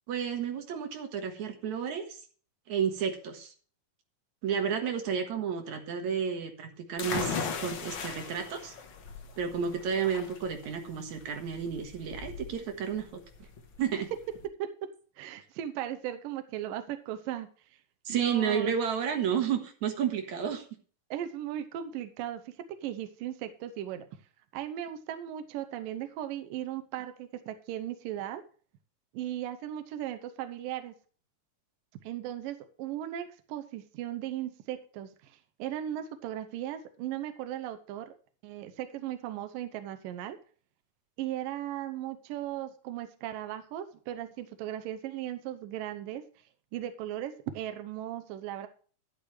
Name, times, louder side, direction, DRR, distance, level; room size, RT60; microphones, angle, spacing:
voice 1, 0.1-2.2 2.7-3.5 4.4-8.7 9.4-13.2 13.8-14.1 18.1-20.6, right 7 dB, 60° right, 5 dB, 2.6 m, -31 dB
sound 1, 7.0-14.5, left 5 dB, 60° left, 1.3 m, -38 dB
voice 2, 15.2-17.5 18.1-18.7 21.1-22.5 22.8-24.0 24.5-28.4 29.1-30.9 32.0-38.1 38.4-40.4 41.2-46.2 46.7-48.7, right 11 dB, 80° right, 8 dB, 2.5 m, -37 dB
11.5 x 11.5 x 3.2 m, 0.41 s
omnidirectional pair, 4.0 m